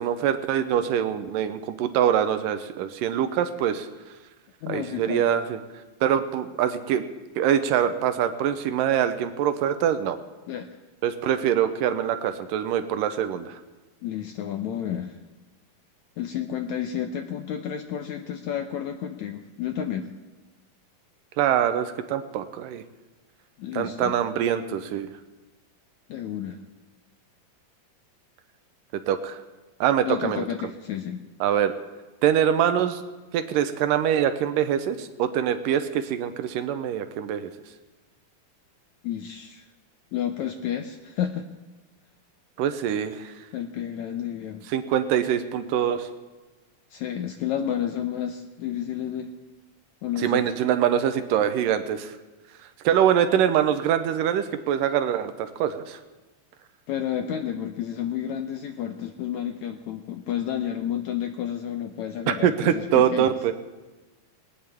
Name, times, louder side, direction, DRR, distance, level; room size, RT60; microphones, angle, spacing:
voice 1, 0.0-3.9 4.7-5.6 6.0-7.0 7.4-10.2 11.0-13.6 21.4-22.8 23.7-25.1 29.1-29.4 29.8-30.5 31.4-31.7 32.2-33.0 33.3-37.5 42.6-43.3 44.7-46.1 50.2-52.2 52.8-56.0 62.3-63.5, right 9 dB, 80° right, 10 dB, 2.3 m, -24 dB
voice 2, 4.6-5.3 10.5-10.8 14.0-15.2 16.2-20.1 23.6-24.1 26.1-26.6 30.0-31.2 39.0-39.7 40.1-41.5 43.5-44.6 46.9-49.3 50.0-50.4 56.9-63.3, left 9 dB, 80° left, 6 dB, 1.7 m, -31 dB
19.5 x 18.5 x 3.5 m, 1.2 s
omnidirectional pair, 4.0 m